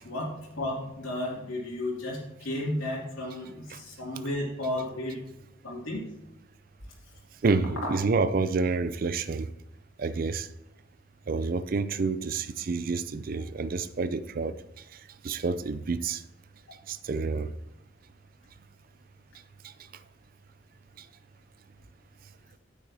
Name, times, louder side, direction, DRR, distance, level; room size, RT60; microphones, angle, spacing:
voice 1, 0.0-5.2 5.6-6.0, left 1 dB, 85° left, -6 dB, 2.6 m, -33 dB
voice 2, 7.4-9.5 10.0-10.5 11.3-14.6 15.2-16.2 16.9-17.5, right 4 dB, 45° right, 14 dB, 0.4 m, -28 dB
9.7 x 8.5 x 2.8 m, 0.91 s
head